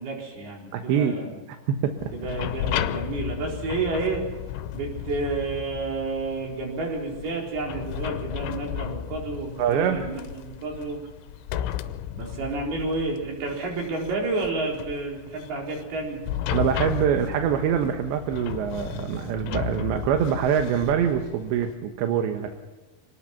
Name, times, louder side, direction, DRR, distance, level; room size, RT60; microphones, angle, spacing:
voice 1, 0.0-1.4 2.1-4.2 4.7-11.0 12.1-16.2, right 3 dB, 55° right, -1 dB, 6.0 m, -30 dB
voice 2, 0.7-1.2 1.7-2.1 9.6-10.1 16.5-22.6, right 8 dB, 75° right, 5 dB, 3.4 m, -24 dB
sound 1, 2.0-21.8, left 10 dB, 90° left, 3.3 m, -34 dB
26.5 x 19.0 x 5.8 m, 1.2 s
omnidirectional pair, 5.4 m